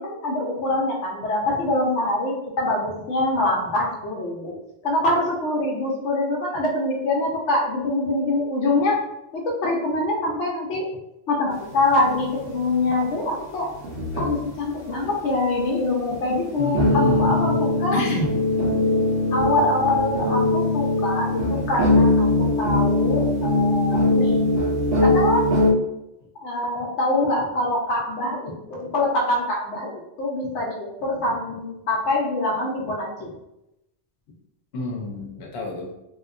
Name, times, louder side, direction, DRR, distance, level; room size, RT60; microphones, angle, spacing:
voice 1, 0.0-4.5 4.8-9.0 9.3-10.8 11.3-13.7 14.2-18.0 19.3-24.5 25.0-25.4 26.4-33.3, left 2 dB, 90° left, -1 dB, 1.0 m, -24 dB
sound 1, 11.8-12.7 13.8-14.7 16.1-16.2 16.7-25.7, left 2 dB, 55° right, 1.2 m, -21 dB
voice 2, 16.6-17.6 17.9-18.3 34.7-35.9, left 2 dB, 65° left, -1 dB, 1.0 m, -28 dB
3.4 x 2.8 x 2.5 m, 0.88 s
omnidirectional pair, 1.2 m